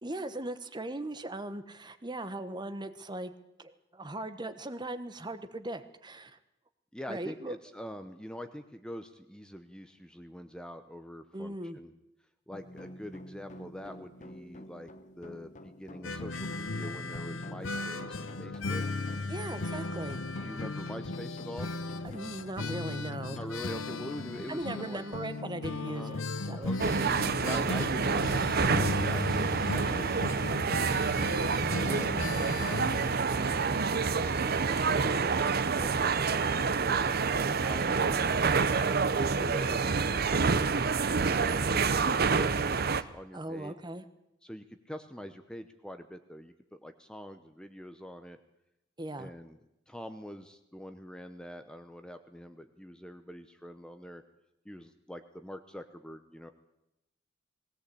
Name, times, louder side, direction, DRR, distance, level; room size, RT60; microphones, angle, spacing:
voice 1, 0.0-3.3 3.6-6.4 7.1-7.6 11.3-11.8 19.3-20.2 22.0-23.4 24.5-26.7 43.3-44.0 49.0-49.3, right 1 dB, 25° right, 10 dB, 1.1 m, -39 dB
voice 2, 6.9-11.9 12.5-18.8 20.4-21.7 23.3-25.0 25.9-26.1 26.6-31.6 31.8-32.1 32.4-33.6 34.1-37.0 37.5-43.8 44.4-46.5 46.8-48.4 49.2-49.6 49.9-54.2 54.6-56.5, equal, 5° left, 8 dB, 0.8 m, -45 dB
sound 1, 12.5-31.7, left 1 dB, 40° left, 1.1 m, -49 dB
sound 2, 16.0-33.2, left 3 dB, 85° left, 0.9 m, -36 dB
sound 3, 26.8-43.0, right 5 dB, 55° right, 0.8 m, -28 dB
19.0 x 17.5 x 8.4 m, 0.89 s
head